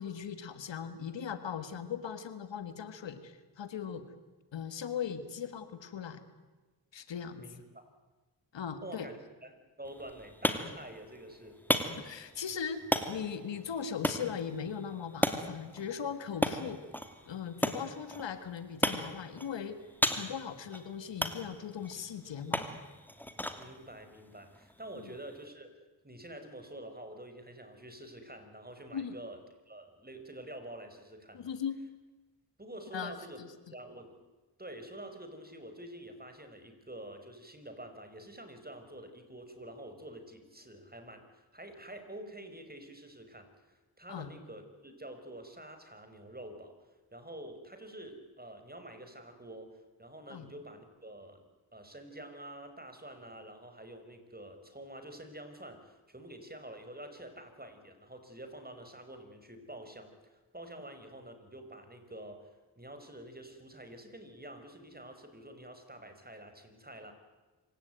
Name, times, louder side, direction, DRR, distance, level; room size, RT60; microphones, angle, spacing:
voice 1, 0.0-4.1 4.5-6.2 6.9-7.5 8.5-9.1 12.0-16.8 17.3-19.8 20.1-22.7 25.0-25.2 28.9-29.2 31.3-31.8 32.9-33.5 44.1-44.3 50.3-50.5, left 7 dB, 90° left, 11 dB, 1.8 m, -39 dB
voice 2, 7.4-7.8 8.8-11.6 23.5-25.7 26.0-29.4 29.7-31.5 32.6-33.4 33.7-34.2 34.6-46.7 47.1-51.5 51.7-62.5 62.8-67.1, right 1 dB, 20° right, 7 dB, 5.3 m, -48 dB
sound 1, 9.8-25.5, equal, 5° left, 2.8 m, -36 dB
26.5 x 17.5 x 9.3 m, 1.2 s
cardioid pair, 45°, 43 cm